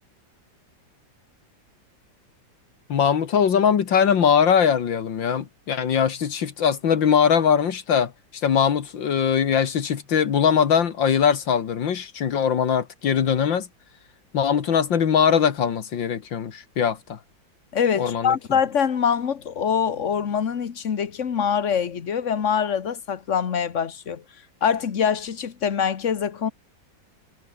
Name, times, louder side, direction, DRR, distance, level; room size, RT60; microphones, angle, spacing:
voice 1, 2.9-8.1 8.4-13.7 14.3-17.2 18.0-18.4, left 7 dB, 75° left, 2.3 m, -21 dB
voice 2, 17.7-24.2 24.6-26.5, left 7 dB, 45° left, 1.5 m, -24 dB
omnidirectional pair, 2.0 m